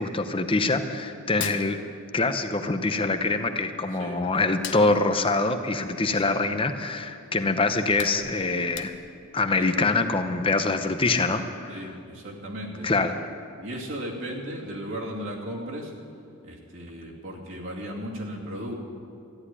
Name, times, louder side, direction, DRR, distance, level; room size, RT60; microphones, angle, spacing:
voice 1, 0.0-1.8 2.1-8.9 9.3-11.8 12.8-13.1, left 3 dB, 25° left, 8 dB, 0.8 m, -24 dB
Hands, 1.2-2.5 2.7-4.0 4.4-6.8 7.2-7.3 7.7-9.3, left 10 dB, 60° left, 0.8 m, -40 dB
voice 2, 6.1-6.6 9.6-9.9 11.7-12.9 13.6-15.9 16.4-18.8, equal, 65° right, -2 dB, 2.7 m, -36 dB
13.5 x 10.5 x 9.9 m, 2.4 s
head